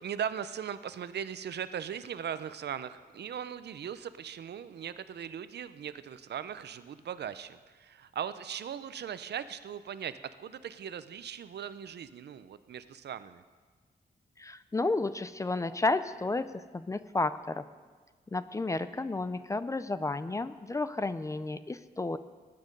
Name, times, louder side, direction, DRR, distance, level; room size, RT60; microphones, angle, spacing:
voice 1, 0.0-13.4, right 8 dB, 80° right, 13 dB, 0.6 m, -39 dB
voice 2, 14.4-17.7 18.3-22.2, left 3 dB, 20° left, 13 dB, 0.4 m, -32 dB
19.5 x 9.6 x 5.3 m, 1.5 s
wide cardioid pair, 175°, 17 cm